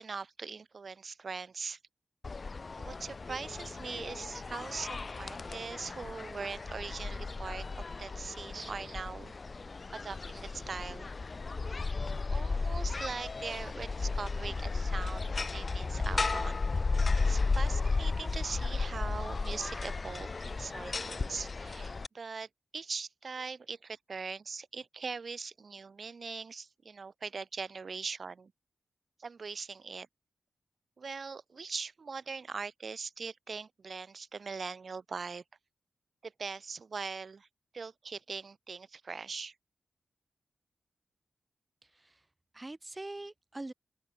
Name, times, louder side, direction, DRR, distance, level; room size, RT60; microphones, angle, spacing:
voice 1, 0.0-1.8 2.8-7.7 8.0-9.3 9.9-11.1 12.3-15.2 15.5-16.7 17.2-22.5 22.7-28.5 29.2-30.1 31.0-35.4 36.2-37.5 37.7-39.5, right 5 dB, 50° right, 2.1 m, -41 dB
sound 1, 2.2-22.1, left 3 dB, 35° left, 1.1 m, -34 dB
voice 2, 41.8-42.3 42.5-43.7, right 2 dB, 20° right, 1.7 m, -43 dB
open air
wide cardioid pair, 115°, 0 cm